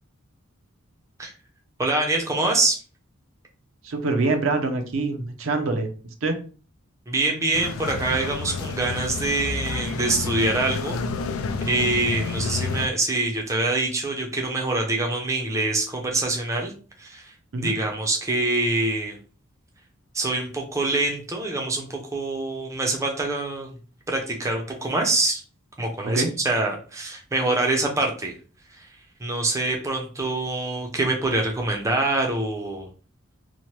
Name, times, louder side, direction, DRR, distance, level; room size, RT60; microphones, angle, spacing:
voice 1, 1.8-2.8 7.1-11.0 11.7-16.7 17.0-19.2 20.1-23.7 24.1-25.4 25.8-28.3 28.8-28.9 29.2-32.9, right 2 dB, 15° right, 1 dB, 0.5 m, -25 dB
voice 2, 3.8-5.9 6.2-6.4 17.5-17.7 26.0-26.3, right 3 dB, 65° right, 5 dB, 0.5 m, -25 dB
sound 1, 7.5-12.9, left 4 dB, 80° left, 0.3 m, -29 dB
2.8 x 2.1 x 3.0 m, 0.38 s
head